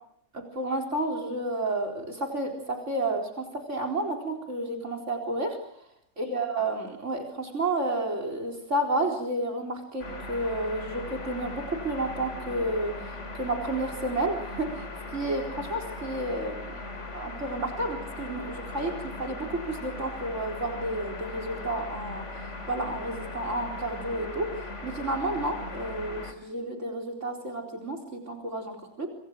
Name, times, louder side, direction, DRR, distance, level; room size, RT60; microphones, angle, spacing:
voice 1, 0.3-5.6 6.2-13.0 13.4-14.9 15.1-16.8 17.1-22.2 22.7-24.5 24.8-29.1, right 2 dB, 80° right, 2 dB, 4.6 m, -31 dB
sound 1, 10.0-26.3, left 2 dB, 75° left, 3.6 m, -39 dB
26.0 x 26.0 x 6.4 m, 0.73 s
omnidirectional pair, 1.2 m